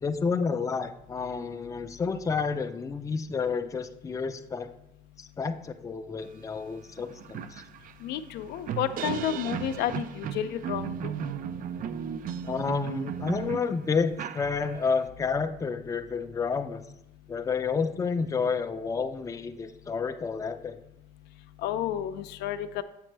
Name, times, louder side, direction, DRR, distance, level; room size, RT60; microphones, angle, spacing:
voice 1, 0.0-4.7 5.2-7.6 12.4-16.8 17.3-20.8, left 5 dB, 20° left, 8 dB, 0.4 m, -30 dB
sound 1, 6.6-6.7 7.0-15.0, right 8 dB, 55° right, 0.4 m, -36 dB
voice 2, 8.0-11.1 21.6-22.8, left 10 dB, 80° left, 11 dB, 0.4 m, -31 dB
7.4 x 5.1 x 3.3 m, 0.84 s
cardioid pair, 110°, 17 cm